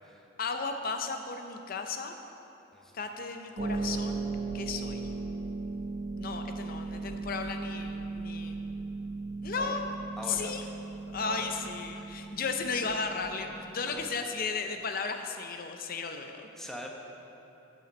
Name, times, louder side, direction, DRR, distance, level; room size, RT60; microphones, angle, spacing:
voice 1, 0.4-2.2 2.9-4.3 4.5-5.1 6.2-8.6 9.4-9.8 10.3-10.7 11.1-16.5, left 4 dB, 45° left, 6 dB, 0.6 m, -35 dB
Harp, 3.6-14.1, right 3 dB, 35° right, 0.5 m, -37 dB
voice 2, 10.2-10.7 11.2-11.5 12.0-12.2 13.8-14.0 16.6-16.9, left 1 dB, ahead, 0 dB, 0.9 m, -43 dB
13.5 x 7.0 x 4.2 m, 3.0 s
head